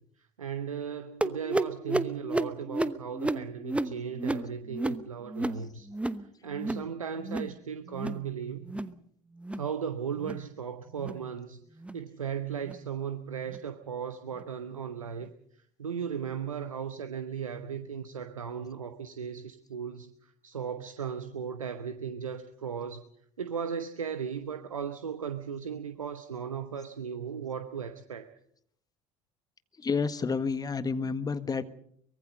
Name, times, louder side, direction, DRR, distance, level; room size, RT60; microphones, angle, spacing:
voice 1, 0.4-5.9 6.4-8.7 9.6-11.6 11.9-15.3 15.8-20.1 20.4-23.0 23.4-28.3, right 7 dB, 80° right, 1.0 m, -36 dB
sound 1, 1.2-6.3 6.5-6.9 7.2-7.6 7.9-8.3 8.6-9.0 9.4-9.7 10.2-10.4 11.0-11.2 11.8-12.0 12.6-12.8 13.5-13.6 14.4-14.5, right 2 dB, 5° right, 1.0 m, -32 dB
voice 2, 29.8-31.7, left 5 dB, 20° left, 1.5 m, -30 dB
24.0 x 21.5 x 5.3 m
figure-of-eight pair, 60°, 17 cm